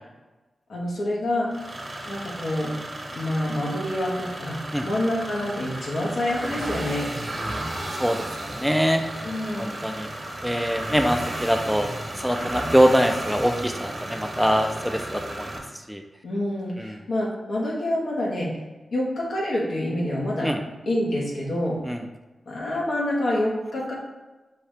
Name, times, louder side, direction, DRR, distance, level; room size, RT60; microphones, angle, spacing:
voice 1, 0.7-1.5 2.0-2.7 3.1-7.1 9.2-9.7 16.2-18.6 18.9-20.5 20.9-21.8 22.5-23.9, left 1 dB, 80° left, -4 dB, 1.3 m, -27 dB
sound 1, 1.5-15.6, right 1 dB, 35° right, 0.9 m, -34 dB
voice 2, 7.9-9.3 9.6-10.1 10.4-11.9 12.2-16.0 16.8-17.0 20.4-20.6 21.8-22.0, equal, ahead, 4 dB, 0.4 m, -24 dB
5.6 x 2.7 x 3.4 m, 1.2 s
cardioid pair, 60°, 0 cm